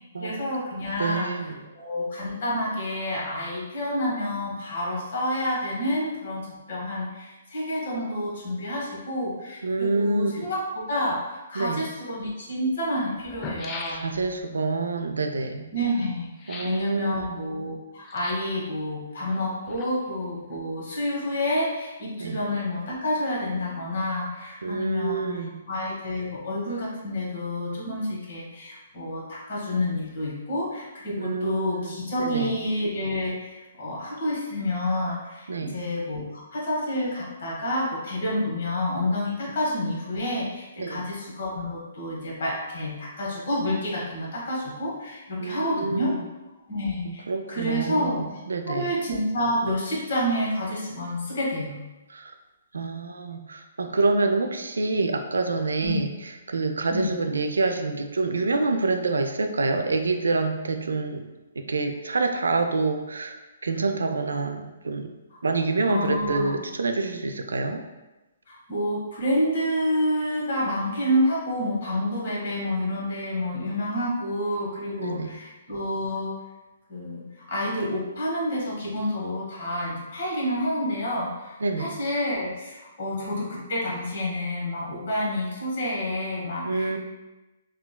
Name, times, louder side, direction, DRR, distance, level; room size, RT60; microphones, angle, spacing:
voice 1, 0.2-1.5 1.8-11.2 11.5-14.1 15.7-46.2 46.7-47.2 47.5-48.2 48.7-51.8 55.8-56.0 56.9-57.2 65.3-65.4 65.9-66.5 68.5-76.3 76.9-87.0, left 1 dB, 60° left, -4 dB, 1.1 m, -29 dB
voice 2, 1.0-1.6 9.6-10.5 11.5-11.9 13.9-15.7 16.5-17.4 22.2-22.4 24.6-25.7 31.2-31.9 32.2-32.5 35.5-35.8 40.8-41.1 45.4-46.2 47.0-48.9 52.1-52.3 52.7-61.2 61.6-63.4 63.6-65.1 65.4-67.8 75.0-75.3 81.6-81.9 86.6-87.0, right 3 dB, 85° right, 6 dB, 0.3 m, -27 dB
sound 1, 12.8-12.9 13.2-14.4 16.4-16.9 18.0-18.6 19.4-20.2 20.5-20.6, left 3 dB, 25° left, 0.4 m, -39 dB
3.7 x 2.2 x 2.2 m, 1.1 s
hypercardioid pair, 135°, 0 cm